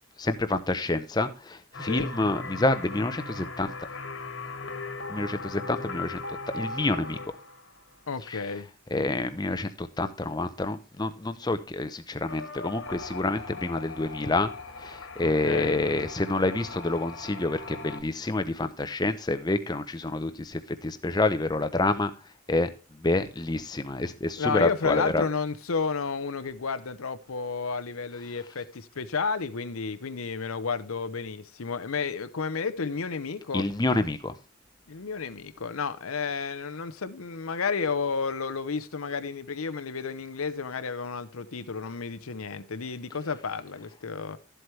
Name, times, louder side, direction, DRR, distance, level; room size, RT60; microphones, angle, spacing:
voice 1, 0.2-3.7 5.1-6.2 6.5-7.2 8.3-8.4 8.9-14.5 14.8-22.1 22.5-22.7 23.0-25.2 33.5-34.3, left 2 dB, 20° left, 0.6 m, -28 dB
sound 1, 1.7-7.9 12.2-18.0, left 3 dB, 70° left, 1.7 m, -39 dB
voice 2, 8.1-8.7 15.2-15.8 24.4-33.7 34.9-44.4, left 5 dB, 85° left, 0.8 m, -31 dB
12.5 x 7.9 x 3.2 m
head